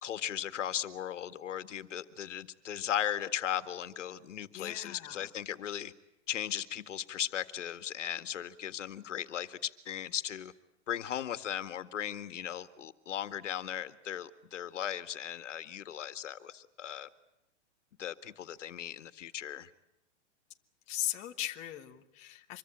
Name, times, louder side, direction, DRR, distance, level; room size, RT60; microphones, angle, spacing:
voice 1, 0.0-5.9 6.3-10.5 10.9-17.1 18.0-19.7, left 10 dB, 80° left, 11 dB, 1.9 m, -37 dB
voice 2, 4.5-5.3 20.9-22.6, left 14 dB, 20° left, 4 dB, 1.2 m, -38 dB
25.5 x 23.0 x 8.8 m, 0.92 s
hypercardioid pair, 175°, 36 cm